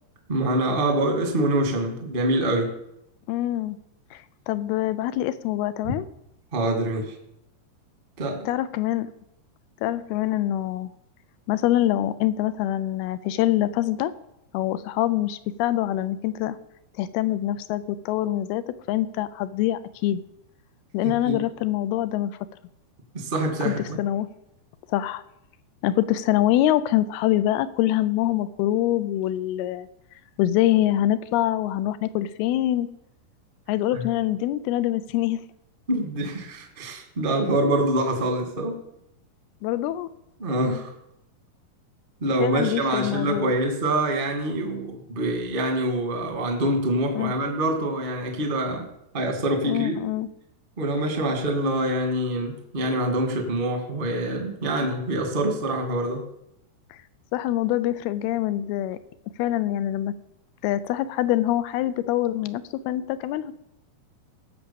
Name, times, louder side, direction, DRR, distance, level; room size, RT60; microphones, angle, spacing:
voice 1, 0.3-2.7 5.8-5.9 6.5-7.1 8.2-8.5 21.2-21.4 23.1-24.0 33.9-34.0 35.9-38.8 40.4-40.9 42.2-48.9 49.1-49.9 50.8-56.2, right 1 dB, 30° right, 3 dB, 1.0 m, -25 dB
voice 2, 3.3-3.8 4.1-6.1 8.5-9.1 9.8-10.9 11.5-14.1 14.5-16.6 17.0-18.6 18.9-20.2 20.9-22.3 23.6-24.3 24.9-25.2 25.8-29.9 30.4-32.9 33.7-35.4 39.6-40.1 42.4-43.5 47.1-47.3 49.6-50.3 57.3-59.0 59.4-60.1 60.6-63.6, left 13 dB, 80° left, 14 dB, 2.4 m, -25 dB
17.0 x 6.2 x 7.0 m, 0.82 s
omnidirectional pair, 4.8 m